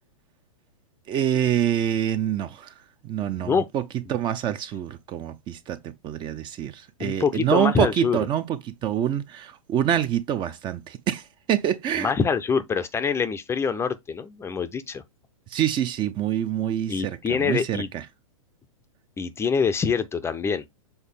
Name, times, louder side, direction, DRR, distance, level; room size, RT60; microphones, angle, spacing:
voice 1, 1.1-2.7 3.0-3.8 4.1-12.1 15.5-18.0, right 10 dB, 25° right, 0.6 m, -26 dB
voice 2, 3.3-3.7 7.0-8.2 12.0-15.0 16.9-17.9 19.2-20.6, left 6 dB, 15° left, 0.6 m, -25 dB
7.1 x 3.9 x 3.6 m
figure-of-eight pair, 105°, 18 cm